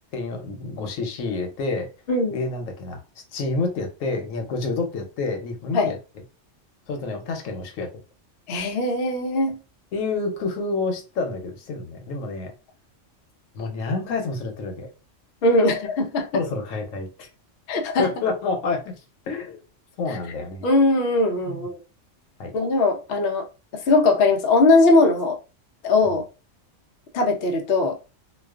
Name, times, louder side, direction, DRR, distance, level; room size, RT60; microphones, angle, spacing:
voice 1, 0.1-1.9 2.3-3.0 3.3-6.0 6.9-7.9 9.9-12.5 13.5-14.9 16.3-17.3 18.0-18.8 19.3-19.6 20.0-20.6 21.5-21.6 22.4-22.5 26.0-26.2, left 3 dB, 85° left, 1.0 m, -28 dB
voice 2, 8.5-9.6 15.4-16.3 17.7-18.1 20.1-20.2 20.6-21.8 22.5-23.4 23.7-25.4 25.8-26.2 27.1-28.0, left 2 dB, 60° left, 0.7 m, -20 dB
2.4 x 2.2 x 2.3 m
omnidirectional pair, 1.3 m